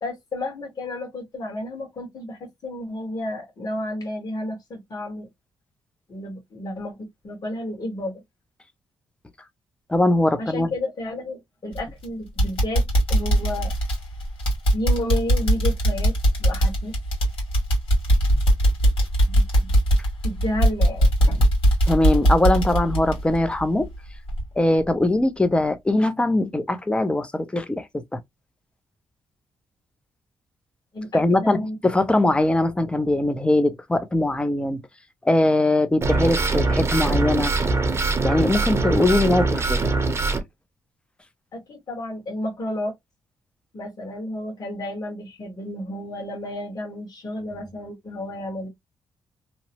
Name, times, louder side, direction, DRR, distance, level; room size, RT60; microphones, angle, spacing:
voice 1, 0.0-5.3 6.1-8.2 10.4-13.7 14.7-16.1 16.4-17.0 19.3-19.7 20.2-21.5 30.9-31.8 41.5-42.9 43.7-48.7, left 1 dB, 45° left, 1.4 m, -31 dB
voice 2, 9.9-10.7 21.9-23.9 24.6-28.2 31.1-34.8 35.2-37.5 38.2-39.9, left 2 dB, 10° left, 0.5 m, -21 dB
sound 1, 11.7-12.0 12.4-24.0 24.3-24.4 24.9-25.0, right 1 dB, 80° left, 1.6 m, -20 dB
sound 2, 36.0-40.4, right 3 dB, 30° right, 0.7 m, -22 dB
2.9 x 2.0 x 2.8 m
cardioid pair, 100°, 9 cm